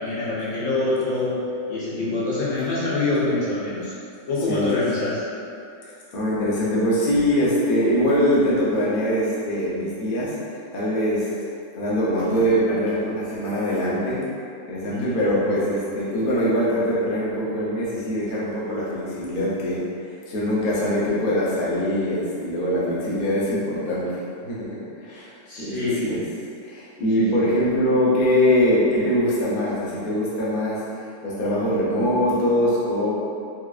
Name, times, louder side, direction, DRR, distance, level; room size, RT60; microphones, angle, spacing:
voice 1, 0.0-1.4 1.7-3.9 4.3-5.3 14.9-15.2 25.5-26.1 27.1-27.3, left 2 dB, 80° left, -9 dB, 1.4 m, -25 dB
voice 2, 4.5-4.8 5.8-10.4 10.7-11.3 11.7-14.2 14.7-25.3 25.6-26.2 26.6-30.8 31.2-33.1, equal, 50° left, -7 dB, 0.7 m, -23 dB
4.7 x 2.4 x 2.4 m, 2.6 s
omnidirectional pair, 1.4 m